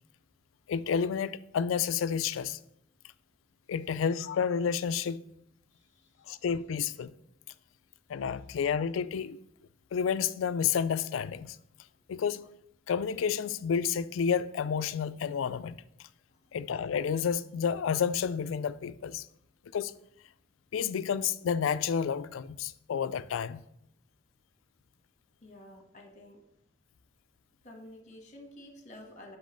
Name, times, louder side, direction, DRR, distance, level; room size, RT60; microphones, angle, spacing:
voice 1, 0.7-2.6 3.7-5.2 6.3-7.1 8.1-9.4 9.9-11.6 12.1-12.5 12.9-15.8 16.5-19.3 19.7-19.9 20.7-23.6, left 7 dB, 90° left, 0.4 m, -30 dB
voice 2, 5.7-6.1 16.3-16.4 25.4-26.4 27.6-29.4, left 1 dB, 40° left, 1.4 m, -50 dB
6.2 x 5.2 x 5.1 m
head